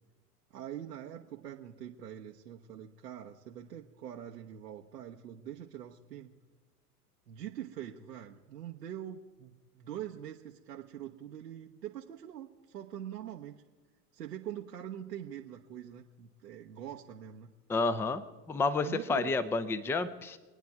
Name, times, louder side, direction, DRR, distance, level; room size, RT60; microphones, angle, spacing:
voice 1, 0.5-6.4 7.3-13.6 14.1-17.5 18.8-19.3, right 10 dB, 85° right, 0 dB, 1.1 m, -44 dB
voice 2, 17.7-18.2 18.5-20.4, left 3 dB, 5° left, 14 dB, 0.5 m, -30 dB
25.5 x 9.3 x 4.7 m, 1.3 s
hypercardioid pair, 90°, 48 cm